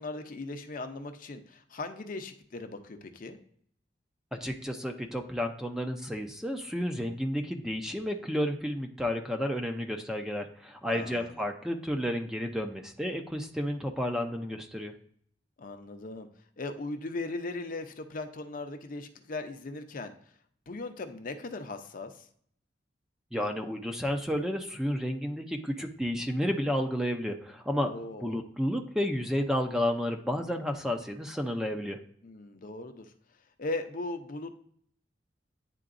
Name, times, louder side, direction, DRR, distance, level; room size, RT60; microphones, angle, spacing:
voice 1, 0.0-3.4 10.9-11.4 15.6-16.3 16.6-20.1 20.7-22.3 27.8-28.4 32.2-33.1 33.6-34.6, left 2 dB, 50° left, 7 dB, 0.6 m, -38 dB
voice 2, 4.3-14.9 23.3-27.9 28.2-32.0, equal, 5° right, 4 dB, 0.5 m, -31 dB
9.9 x 3.8 x 2.5 m, 0.63 s
head